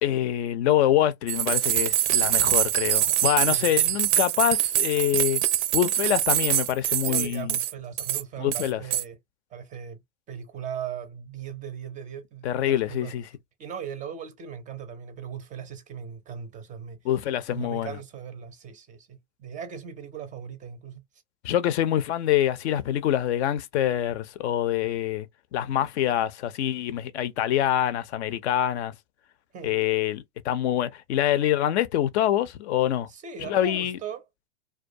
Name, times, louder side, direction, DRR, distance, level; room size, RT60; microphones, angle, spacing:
voice 1, 0.0-5.4 5.7-7.5 8.4-8.8 12.4-13.2 17.0-17.9 21.4-25.3 25.5-28.9 29.6-33.1 33.4-34.0, left 11 dB, 65° left, 0.5 m, -25 dB
sound 1, 1.3-7.7 8.0-8.2 8.5-9.0, right 13 dB, 75° right, 0.5 m, -24 dB
voice 2, 3.5-3.9 7.1-9.2 9.5-13.1 13.6-17.1 17.5-21.0 29.5-29.8 33.1-34.3, right 8 dB, 20° right, 0.4 m, -39 dB
2.3 x 2.2 x 2.5 m
hypercardioid pair, 105°, 36 cm